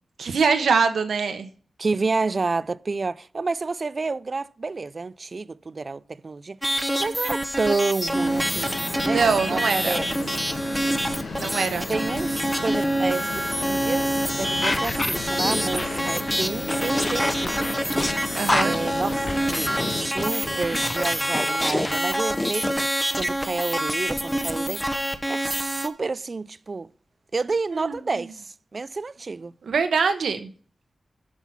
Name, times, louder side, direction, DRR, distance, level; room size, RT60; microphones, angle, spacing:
voice 1, 0.2-1.5 9.1-10.0 11.3-11.9 18.3-18.8 27.7-28.2 29.6-30.5, right 5 dB, 80° right, 1.0 m, -23 dB
voice 2, 1.8-6.6 7.0-8.7 9.0-10.4 11.9-17.7 18.6-22.8 23.2-24.9 25.3-26.9 27.3-29.5, right 3 dB, 45° right, 0.4 m, -29 dB
sound 1, 6.6-25.9, equal, ahead, 0.9 m, -27 dB
sound 2, 8.1-20.1, left 4 dB, 75° left, 1.7 m, -35 dB
sound 3, 14.6-22.9, left 2 dB, 25° left, 0.6 m, -29 dB
8.0 x 6.1 x 5.8 m
cardioid pair, 75°, 0 cm